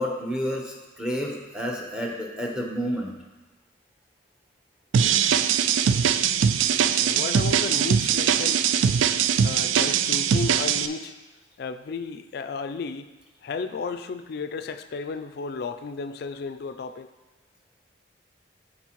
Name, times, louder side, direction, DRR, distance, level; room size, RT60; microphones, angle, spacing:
voice 1, 0.0-3.2, equal, 5° right, 0 dB, 0.9 m, -30 dB
sound 1, 4.9-10.9, right 7 dB, 85° right, 0.3 m, -21 dB
voice 2, 7.0-8.7 9.4-11.1 11.6-13.1 13.4-17.1, left 4 dB, 55° left, 9 dB, 0.3 m, -33 dB
12.5 x 4.2 x 3.0 m, 1.2 s
head